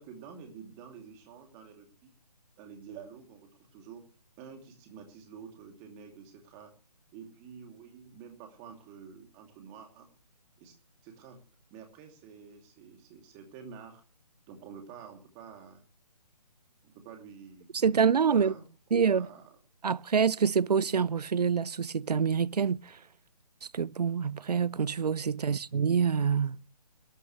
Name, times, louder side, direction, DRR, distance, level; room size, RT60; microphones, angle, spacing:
voice 1, 0.0-2.1 2.6-4.0 4.4-6.7 7.1-10.1 10.6-10.7 11.0-11.4 11.7-14.0 14.5-15.8 16.8-18.6 19.1-19.4, right 7 dB, 20° right, 2.8 m, -49 dB
voice 2, 17.7-18.5 18.9-19.3 19.8-23.0 23.7-26.6, right 6 dB, 70° right, 0.6 m, -26 dB
22.0 x 12.5 x 3.2 m
figure-of-eight pair, 150°, 21 cm